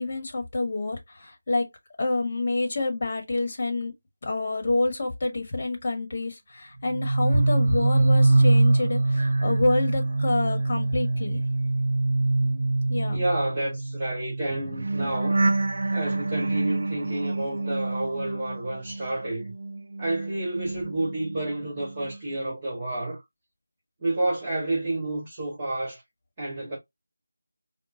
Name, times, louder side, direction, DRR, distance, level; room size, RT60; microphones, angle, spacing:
voice 1, 0.0-1.7 2.0-3.9 4.2-11.4 12.9-13.2, left 2 dB, 40° left, 1.2 m, -27 dB
sound 1, 6.8-19.1 19.4-21.5 21.8-22.2, right 2 dB, 60° right, 0.3 m, -25 dB
voice 2, 13.1-15.5 15.9-19.5 20.0-23.2 24.0-26.0 26.4-26.8, right 2 dB, 20° right, 1.7 m, -30 dB
4.4 x 2.2 x 2.7 m
figure-of-eight pair, 165°, 0 cm